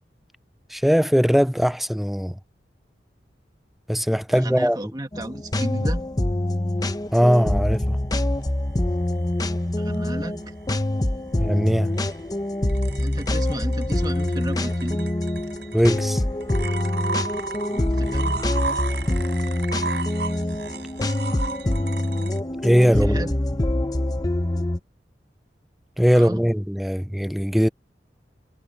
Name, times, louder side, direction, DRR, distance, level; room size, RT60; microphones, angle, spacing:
voice 1, 0.7-2.4 3.9-4.8 7.1-8.0 11.4-11.9 15.7-16.2 22.6-23.2 26.0-27.7, equal, ahead, 0.4 m, -20 dB
voice 2, 4.3-6.2 9.8-10.5 13.0-15.1 17.7-18.4 22.8-23.4 26.1-26.4, right 1 dB, 25° right, 1.9 m, -34 dB
sound 1, 5.1-24.8, left 1 dB, 20° left, 0.9 m, -25 dB
sound 2, 7.7-22.4, right 4 dB, 70° right, 5.0 m, -36 dB
head